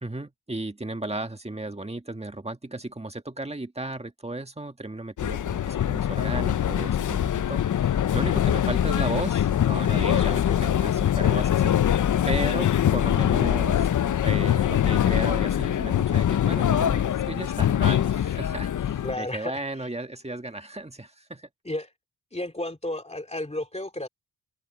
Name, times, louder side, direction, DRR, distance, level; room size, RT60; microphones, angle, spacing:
voice 1, 0.0-12.0 12.2-13.9 14.2-21.5, right 2 dB, 15° right, 1.7 m, -35 dB
sound 1, 5.2-19.2, left 10 dB, 50° left, 0.5 m, -23 dB
voice 2, 10.2-10.6 19.0-19.9 21.6-21.9 22.3-24.1, left 1 dB, 15° left, 2.7 m, -33 dB
open air
wide cardioid pair, 95°, 41 cm